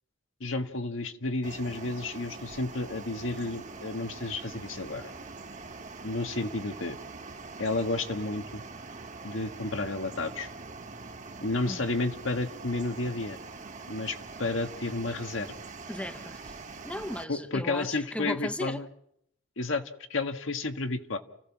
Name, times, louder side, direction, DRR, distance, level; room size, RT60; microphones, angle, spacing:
voice 1, 0.4-5.1 6.0-7.0 7.6-8.6 9.2-10.5 11.4-13.4 13.9-15.5 17.3-18.9 19.6-19.8 20.1-21.2, left 2 dB, 85° left, 1.7 m, -31 dB
sound 1, 1.4-17.2, right 3 dB, 40° right, 1.5 m, -44 dB
voice 2, 15.9-16.5 16.8-18.8, left 1 dB, 5° left, 1.0 m, -36 dB
29.5 x 16.0 x 6.1 m
head